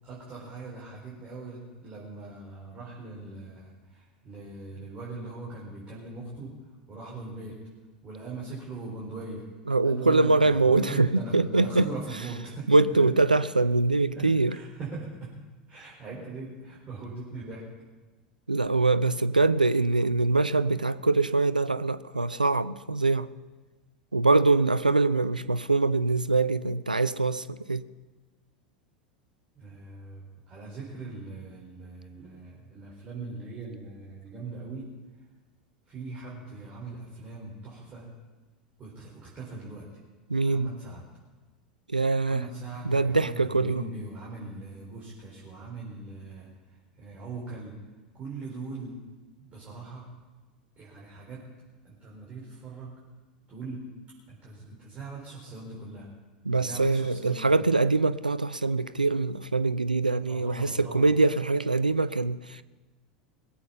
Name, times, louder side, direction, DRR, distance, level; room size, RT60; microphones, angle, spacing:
voice 1, 0.0-7.6 8.0-9.5 9.8-13.1 14.1-15.4 15.7-17.7 29.5-34.9 35.9-38.1 38.8-39.9 40.4-41.0 42.2-47.8 48.1-49.0 49.4-50.1 50.8-51.5 51.8-53.0 53.5-53.9 54.3-56.1 56.5-57.5 60.3-61.1, right 3 dB, 30° right, 4.3 m, -40 dB
voice 2, 9.7-11.9 12.7-14.6 18.5-23.3 24.1-27.8 40.3-40.7 41.9-42.5 42.8-43.8 56.5-62.6, right 3 dB, 85° right, 0.4 m, -23 dB
21.0 x 8.4 x 5.7 m
figure-of-eight pair, 80°, 4 cm